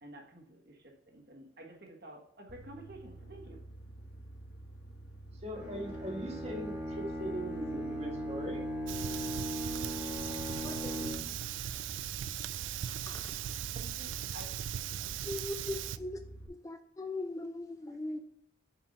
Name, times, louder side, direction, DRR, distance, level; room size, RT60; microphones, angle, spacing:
voice 1, 0.0-3.6 13.7-14.5 15.0-15.4 15.7-15.9 17.8-18.2, right 1 dB, 55° right, 1 dB, 1.4 m, -51 dB
sound 1, 2.5-16.5, right 1 dB, 60° left, 1.2 m, -50 dB
voice 2, 5.4-8.6 11.0-11.3, right 1 dB, 35° right, 0 dB, 1.6 m, -40 dB
Bowed string instrument, 5.5-11.5, equal, 10° right, 1.4 m, -39 dB
Fire, 8.9-16.0, right 11 dB, 85° right, 0.3 m, -38 dB
voice 3, 10.6-10.9 13.1-13.3 15.3-16.2 16.5-18.2, left 2 dB, 15° left, 7 dB, 0.3 m, -39 dB
6.9 x 4.7 x 4.1 m, 0.70 s
head